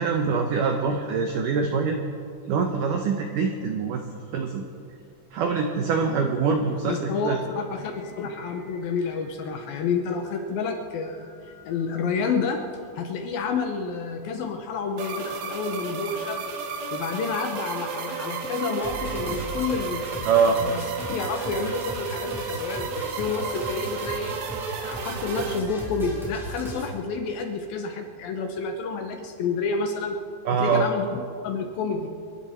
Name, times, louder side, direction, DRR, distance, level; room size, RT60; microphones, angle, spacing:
voice 1, 0.0-2.0 2.5-4.0 4.3-4.6 5.3-7.4 20.3-20.6 30.5-30.9, right 5 dB, 85° right, 4 dB, 1.8 m, -24 dB
voice 2, 6.9-11.3 11.7-12.6 13.0-16.4 16.9-20.3 20.6-20.8 21.1-24.4 24.8-30.2 30.5-32.1, left 4 dB, 70° left, 5 dB, 2.3 m, -29 dB
Singing, 7.8-26.7, left 2 dB, 50° left, 2.4 m, -51 dB
sound 1, 15.0-25.6, right 5 dB, 70° right, 2.7 m, -33 dB
sound 2, 18.8-26.9, right 1 dB, ahead, 3.1 m, -37 dB
26.5 x 11.5 x 4.3 m, 2.4 s
omnidirectional pair, 5.0 m